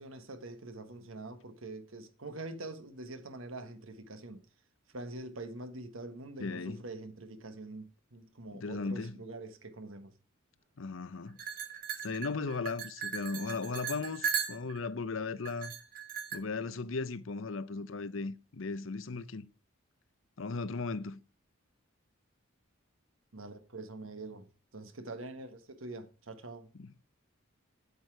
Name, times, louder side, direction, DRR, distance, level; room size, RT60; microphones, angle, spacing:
voice 1, 0.0-4.4 4.9-10.1 23.3-24.5 24.7-26.7, right 2 dB, 80° right, 1.5 m, -44 dB
voice 2, 6.4-6.8 8.5-9.2 10.8-11.4 12.0-15.7 16.3-19.5 20.4-21.2 26.8-27.0, left 4 dB, 70° left, 0.7 m, -37 dB
sound 1, 11.4-14.9 15.4-16.4, right 7 dB, 45° right, 1.8 m, -37 dB
8.3 x 8.3 x 4.8 m
head